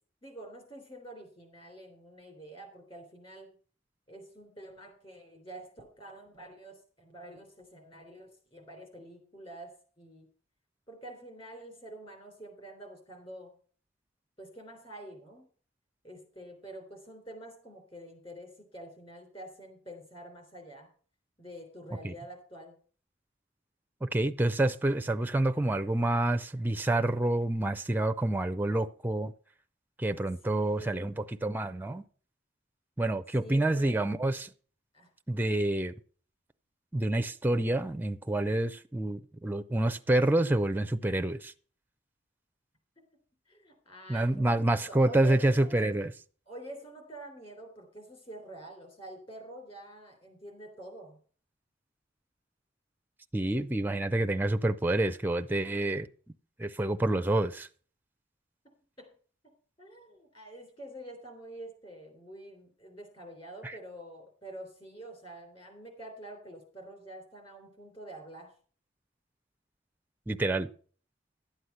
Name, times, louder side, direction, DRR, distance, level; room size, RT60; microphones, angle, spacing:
voice 1, 0.2-3.5 4.1-10.3 10.9-13.5 14.4-15.5 16.0-20.9 21.4-22.8 30.4-31.2 33.4-34.1 34.9-35.1 43.5-45.9 46.5-51.2 59.0-59.1 59.8-68.5, right 1 dB, 30° left, 3.5 m, -47 dB
voice 2, 24.0-29.3 30.0-32.0 33.0-34.5 35.3-35.9 36.9-41.5 44.1-46.1 53.3-56.1 56.6-57.7 63.6-63.8 70.3-70.7, right 1 dB, 10° right, 0.4 m, -28 dB
12.0 x 8.0 x 5.7 m
head